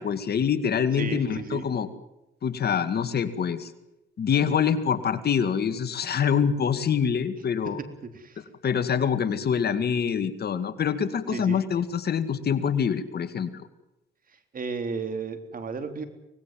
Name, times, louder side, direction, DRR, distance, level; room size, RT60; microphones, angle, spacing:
voice 1, 0.0-1.9 2.4-3.7 4.2-7.8 8.6-13.7, left 7 dB, 55° left, 10 dB, 2.2 m, -25 dB
voice 2, 0.9-1.7 8.1-8.4 11.3-11.6 14.5-16.1, right 5 dB, 45° right, 8 dB, 3.6 m, -33 dB
24.5 x 19.5 x 7.6 m, 0.90 s
cardioid pair, 90°, 20 cm